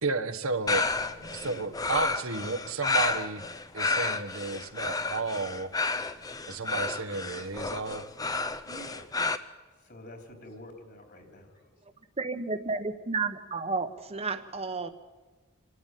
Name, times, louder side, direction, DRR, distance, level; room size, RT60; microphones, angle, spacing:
voice 1, 0.0-0.9 1.3-3.4 3.7-5.7 6.5-8.0, right 3 dB, 80° right, 7 dB, 1.3 m, -32 dB
sound 1, 0.7-9.4, left 3 dB, 15° left, 0.7 m, -31 dB
voice 2, 1.0-1.7 8.6-9.3 9.8-11.7, equal, 50° left, 3 dB, 3.8 m, -48 dB
voice 3, 12.2-14.9, right 4 dB, 30° right, 9 dB, 1.1 m, -32 dB
27.5 x 13.0 x 9.3 m, 1.3 s
head